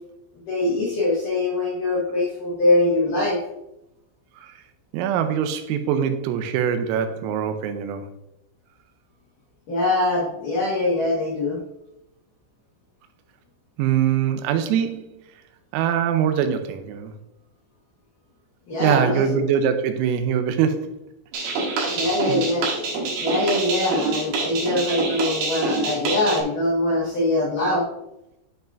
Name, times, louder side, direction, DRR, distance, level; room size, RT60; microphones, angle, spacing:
voice 1, 0.5-3.4 9.7-11.6 18.7-19.5 21.9-22.7 23.2-27.9, left 2 dB, 65° left, -6 dB, 2.2 m, -23 dB
voice 2, 4.9-8.1 13.8-15.1 15.7-17.1 18.8-21.0 21.4-21.6 21.9-22.0 22.3-22.4, right 8 dB, 90° right, 8 dB, 3.5 m, -23 dB
sound 1, 21.3-26.4, right 3 dB, 65° right, 2.9 m, -26 dB
10.5 x 5.6 x 2.5 m, 0.86 s
omnidirectional pair, 5.9 m